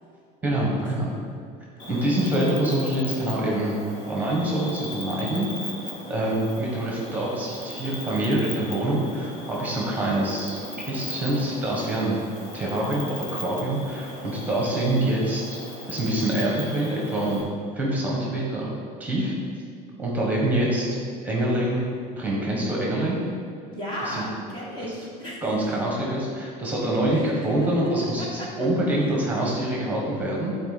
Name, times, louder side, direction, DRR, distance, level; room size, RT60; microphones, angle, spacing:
voice 1, 0.4-1.1 1.9-3.7 4.1-5.5 6.1-10.6 10.9-12.2 12.5-15.6 15.9-17.4 17.7-18.7 19.0-19.3 20.0-20.8 21.2-21.8 22.2-23.2 24.0-24.2 25.4-30.5, right 1 dB, 10° right, -4 dB, 1.4 m, -25 dB
Cricket, 1.8-17.4, left 2 dB, 65° left, 2.1 m, -38 dB
voice 2, 23.7-25.4 27.4-27.5 28.2-28.5, equal, 25° left, -4 dB, 1.3 m, -34 dB
10.5 x 4.4 x 4.2 m, 2.3 s
cardioid pair, 170°, 18 cm